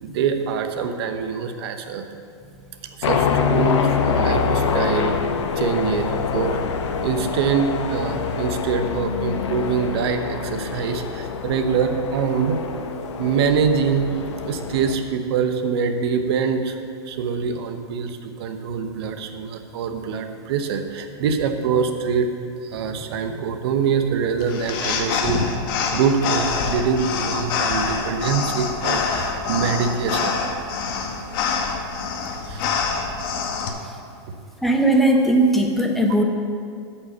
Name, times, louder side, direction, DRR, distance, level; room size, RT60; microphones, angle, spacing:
voice 1, 0.0-2.0 3.0-5.2 5.6-6.6 7.0-12.6 13.2-14.1 14.5-16.8 17.0-22.3 22.7-25.4 25.9-30.4 32.3-32.7, right 6 dB, 60° right, 7 dB, 0.9 m, -24 dB
sound 1, 3.0-15.0, left 6 dB, 80° left, 0.8 m, -25 dB
sound 2, 24.4-33.7, left 5 dB, 50° left, 1.1 m, -25 dB
voice 2, 34.6-36.2, right 1 dB, ahead, 2 dB, 0.7 m, -18 dB
8.3 x 5.6 x 6.8 m, 2.4 s
supercardioid pair, 150°, 15 cm